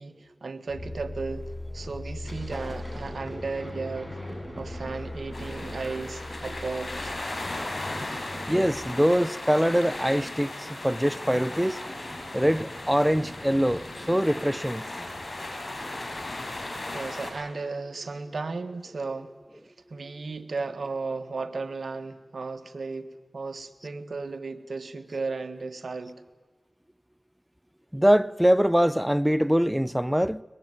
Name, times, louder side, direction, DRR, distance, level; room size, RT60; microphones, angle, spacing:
voice 1, 0.0-4.2 4.6-7.1 16.9-19.4 19.6-26.2, right 4 dB, 75° right, 1.6 m, -35 dB
sound 1, 0.7-8.9, left 1 dB, 85° left, 6.6 m, -40 dB
Thunder, 1.3-1.7 2.1-16.5, equal, 15° left, 7.7 m, -45 dB
sound 2, 5.3-17.3, left 2 dB, 60° left, 6.2 m, -37 dB
voice 2, 8.5-11.8 12.3-14.9 27.9-30.4, equal, 5° right, 0.7 m, -23 dB
22.0 x 21.0 x 9.5 m
cardioid pair, 40°, 0 cm